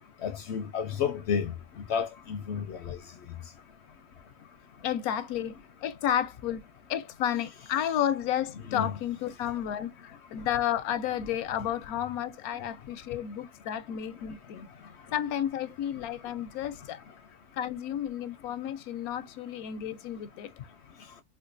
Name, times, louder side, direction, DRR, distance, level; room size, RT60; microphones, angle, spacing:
voice 1, 0.2-1.5 1.9-3.0 8.7-8.9, left 7 dB, 65° left, 0.7 m, -31 dB
voice 2, 4.8-5.6 5.8-6.6 6.9-14.7 15.1-17.0 17.5-20.5, left 10 dB, 85° left, 1.0 m, -32 dB
4.5 x 2.3 x 2.5 m
omnidirectional pair, 1.5 m